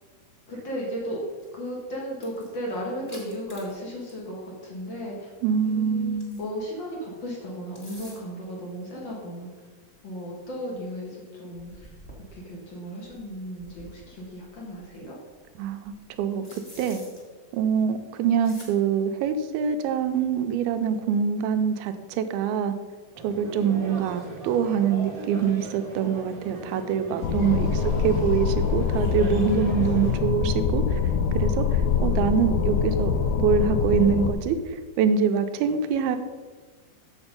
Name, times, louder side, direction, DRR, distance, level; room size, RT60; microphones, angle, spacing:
voice 1, 0.5-1.2 1.5-5.3 5.6-9.5 10.0-11.9 12.3-15.2 27.3-28.3, equal, 65° left, -3 dB, 1.1 m, -35 dB
sound 1, 1.4-1.7 2.1-4.3 4.6-4.7 5.5-6.6 7.5-8.4 9.4-9.5 9.9-10.0 10.4-10.5 10.7-10.8 11.5-12.5 13.0-14.9 15.3-17.2 18.4-18.7, equal, 20° left, 1.1 m, -49 dB
voice 2, 5.4-6.4 15.6-17.0 17.5-22.7 23.2-31.0 31.3-33.1 33.4-36.2, right 7 dB, 85° right, 9 dB, 2.5 m, -25 dB
sound 2, 23.1-30.2, right 2 dB, 55° right, 0.9 m, -39 dB
sound 3, 27.2-34.3, left 6 dB, 80° left, 1.9 m, -24 dB
7.2 x 6.7 x 5.1 m, 1.4 s
omnidirectional pair, 4.4 m